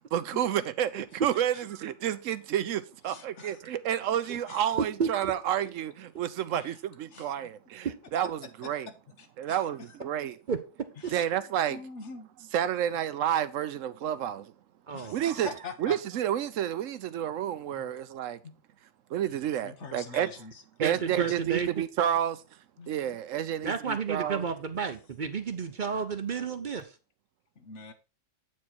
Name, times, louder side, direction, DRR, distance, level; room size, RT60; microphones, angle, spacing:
voice 1, 0.1-7.9 8.1-8.9 9.4-10.4 11.1-11.8 12.5-14.5 15.1-15.5 15.8-18.4 19.1-20.3 20.8-22.4 22.9-24.4, right 10 dB, 85° right, 1.0 m, -30 dB
voice 2, 3.1-3.6 4.5-4.6 6.5-6.7 7.1-7.3 9.2-9.6 11.7-12.3 14.9-15.9 17.8-17.9 18.4-18.5 19.6-20.5 21.1-21.3 22.8-22.9 27.6-27.9, left 5 dB, 70° left, 1.4 m, -43 dB
voice 3, 14.9-15.2 20.8-21.8 23.6-26.9, right 6 dB, 50° right, 0.7 m, -31 dB
8.4 x 4.6 x 4.4 m
omnidirectional pair, 1.3 m